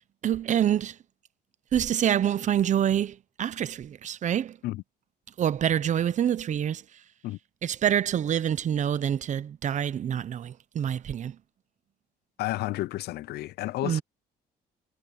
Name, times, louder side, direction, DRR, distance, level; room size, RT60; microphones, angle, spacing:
voice 1, 0.2-1.0 1.7-4.6 5.4-6.8 7.6-11.4 13.8-14.0, right 10 dB, 45° right, 0.9 m, -26 dB
voice 2, 12.4-14.0, left 16 dB, 70° left, 0.5 m, -31 dB
cardioid pair, 110°, 17 cm